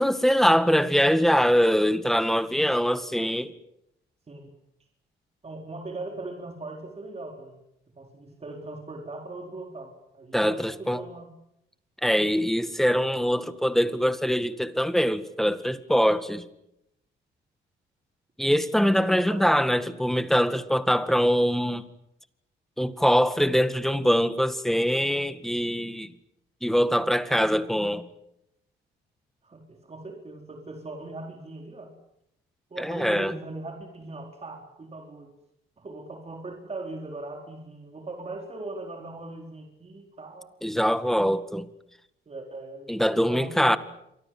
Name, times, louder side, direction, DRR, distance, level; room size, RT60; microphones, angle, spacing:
voice 1, 0.0-3.5 10.3-11.0 12.0-16.5 18.4-21.8 22.8-26.1 26.6-28.1 32.8-33.3 40.6-41.6 42.9-43.8, equal, ahead, 1.9 m, -23 dB
voice 2, 5.4-7.6 8.0-11.3 18.8-19.8 27.3-27.5 29.4-31.9 32.7-35.3 35.8-40.5 42.3-43.8, right 2 dB, 30° right, 4.5 m, -40 dB
28.0 x 24.5 x 7.9 m
cardioid pair, 90°, 20 cm